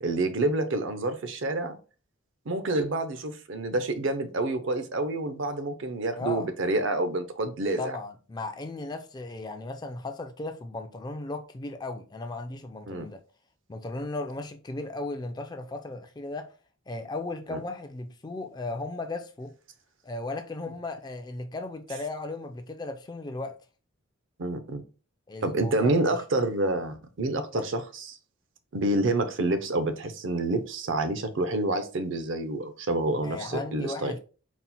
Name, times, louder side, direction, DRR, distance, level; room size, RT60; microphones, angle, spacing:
voice 1, 0.0-1.8 2.5-8.0 12.9-13.1 17.5-17.6 24.4-24.8 25.4-28.2 28.7-34.1, right 2 dB, 60° right, 0.5 m, -28 dB
voice 2, 6.2-6.5 7.8-13.2 13.7-16.5 16.9-19.5 20.0-23.6 25.3-26.2 27.5-27.7 33.2-34.2, left 2 dB, 20° left, 0.3 m, -36 dB
4.2 x 2.0 x 4.2 m
head